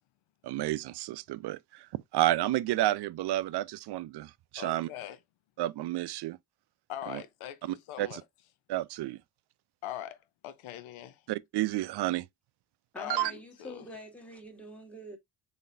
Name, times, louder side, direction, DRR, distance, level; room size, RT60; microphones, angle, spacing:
voice 1, 0.4-1.9 2.1-4.9 5.6-6.4 7.1-7.2 8.0-8.2 8.7-9.2 11.3-12.3 13.1-13.3, right 15 dB, 60° right, 0.5 m, -30 dB
voice 2, 4.6-5.2 6.9-8.2 9.8-11.3 13.0-13.9, left 12 dB, 85° left, 0.7 m, -42 dB
voice 3, 12.9-15.2, equal, 5° left, 1.3 m, -45 dB
3.9 x 3.5 x 2.6 m
cardioid pair, 70°, 47 cm